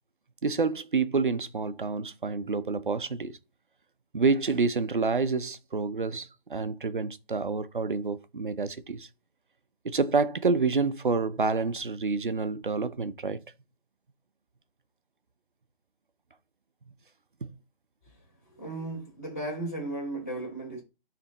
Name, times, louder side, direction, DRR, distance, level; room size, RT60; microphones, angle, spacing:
voice 1, 0.4-3.3 4.1-9.1 9.8-13.4 17.4-17.5, right 4 dB, 60° right, 0.7 m, -28 dB
voice 2, 18.5-20.8, right 2 dB, 15° left, 3.6 m, -35 dB
9.7 x 3.4 x 4.0 m
figure-of-eight pair, 180°, 30 cm